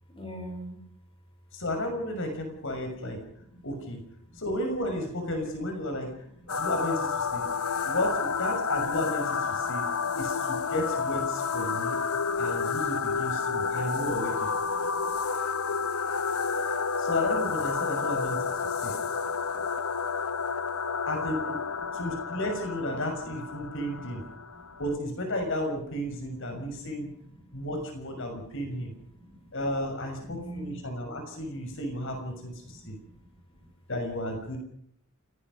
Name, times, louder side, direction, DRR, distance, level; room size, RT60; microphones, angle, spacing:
voice 1, 0.1-0.7 3.3-3.6 4.3-4.4 5.8-6.0 6.5-6.6 7.4-7.9 9.6-10.1 12.2-12.6 13.5-14.0 14.8-15.2 18.8-19.6 21.9-22.0 24.5-24.8 26.5-26.9 27.5-27.6 28.3-28.4 29.0-29.5 30.2-30.8 32.7-33.2 33.6-33.7, right 1 dB, 25° left, 4 dB, 5.6 m, -46 dB
voice 2, 1.5-3.2 3.6-4.0 4.3-6.1 6.5-7.4 7.8-9.8 10.2-12.0 12.4-14.5 16.7-18.9 21.1-21.6 21.9-24.2 24.8-27.1 27.5-28.9 29.5-33.0 33.9-34.6, left 1 dB, 60° left, 4 dB, 6.4 m, -33 dB
sound 1, 6.5-24.9, left 5 dB, 80° left, 1.2 m, -30 dB
29.0 x 19.5 x 5.4 m, 0.70 s
head